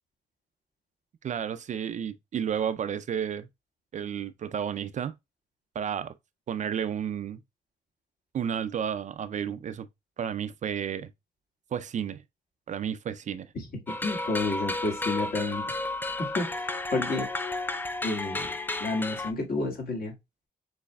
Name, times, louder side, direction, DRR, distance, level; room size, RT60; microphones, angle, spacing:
voice 1, 1.2-3.5 3.9-5.1 5.8-6.1 6.5-7.4 8.3-9.9 10.2-11.1 11.7-12.2 12.7-13.5, right 8 dB, 45° right, 0.4 m, -32 dB
voice 2, 13.5-15.7 16.2-17.4 18.0-20.1, left 2 dB, 60° left, 1.9 m, -31 dB
sound 1, 13.9-19.3, left 2 dB, 10° left, 0.4 m, -32 dB
6.4 x 3.3 x 2.2 m
cardioid pair, 125°, 17 cm